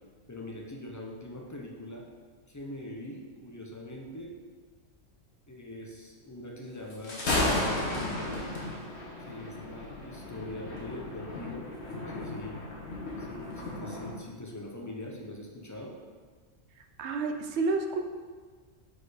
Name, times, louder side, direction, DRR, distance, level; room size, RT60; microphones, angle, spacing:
voice 1, 0.3-2.1 2.5-4.3 5.5-8.5 9.2-12.6 13.2-15.9, left 1 dB, 25° left, -1 dB, 0.4 m, -43 dB
Thunder, 6.9-14.1, left 1 dB, 60° left, 1.3 m, -34 dB
voice 2, 17.0-18.0, right 3 dB, 65° right, 4 dB, 0.8 m, -29 dB
4.8 x 4.2 x 4.9 m, 1.5 s
omnidirectional pair, 1.4 m